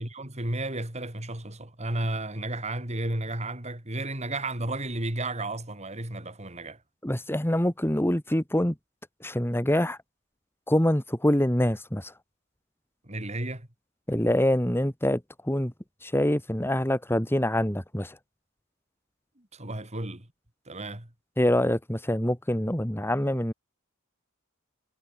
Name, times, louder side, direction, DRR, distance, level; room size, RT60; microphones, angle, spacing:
voice 1, 0.0-6.8 13.0-13.7 19.4-20.3 20.7-21.1, right 2 dB, 30° right, 3.9 m, -33 dB
voice 2, 7.0-8.7 9.2-10.0 10.7-12.1 14.1-15.7 16.0-18.2 21.4-23.5, left 1 dB, 10° left, 1.9 m, -25 dB
head